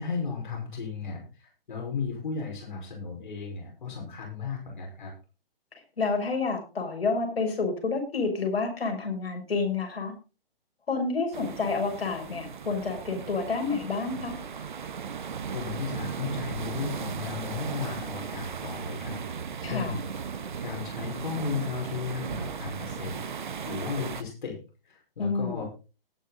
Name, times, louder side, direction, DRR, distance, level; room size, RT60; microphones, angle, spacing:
voice 1, 0.0-5.1 15.5-19.2 19.6-20.0 20.6-24.6 24.8-25.7, left 5 dB, 55° left, 0 dB, 5.3 m, -35 dB
voice 2, 6.0-10.1 10.9-14.4 19.6-20.0 25.2-25.6, left 4 dB, 85° left, 3 dB, 6.4 m, -29 dB
sound 1, 11.3-24.2, right 6 dB, 55° right, 1.2 m, -36 dB
19.0 x 6.9 x 4.0 m, 0.32 s
hypercardioid pair, 180°, 30 cm